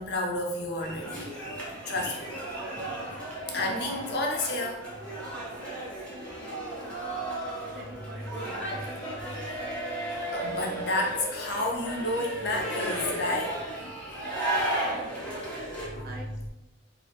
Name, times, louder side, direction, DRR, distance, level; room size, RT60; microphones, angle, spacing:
voice 1, 0.0-1.4 1.9-2.3 3.5-5.2 9.2-9.6 10.3-13.6 14.1-14.5 15.8-16.1, left 2 dB, 60° left, 0 dB, 0.5 m, -31 dB
sound 1, 0.8-15.9, right 1 dB, 5° left, 0.5 m, -34 dB
voice 2, 7.7-8.9 14.9-15.1 15.7-16.5, right 2 dB, 50° right, 1 dB, 0.4 m, -45 dB
2.3 x 2.0 x 2.8 m, 0.99 s
head